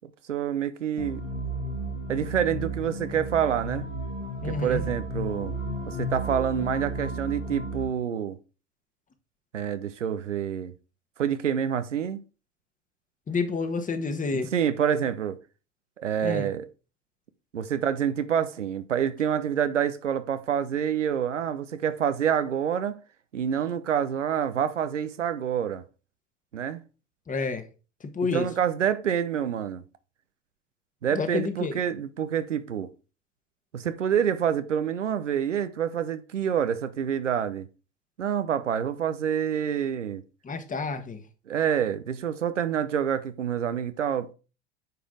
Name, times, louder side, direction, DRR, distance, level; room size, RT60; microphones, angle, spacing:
voice 1, 0.3-1.2 2.1-3.9 4.4-5.5 5.9-8.4 9.5-10.7 11.2-12.2 14.3-15.4 16.0-16.7 17.5-23.0 23.3-25.8 26.5-26.8 28.3-29.8 31.0-32.9 33.7-37.7 38.2-40.2 41.5-44.3, right 8 dB, 85° right, 0.8 m, -27 dB
sound 1, 1.0-7.8, right 1 dB, 80° left, 2.6 m, -33 dB
voice 2, 4.4-4.8 13.3-14.5 16.2-16.5 27.3-27.6 28.0-28.5 31.1-31.8 40.4-41.2, left 4 dB, 20° left, 1.4 m, -29 dB
9.1 x 5.1 x 3.8 m
figure-of-eight pair, 80°, 36 cm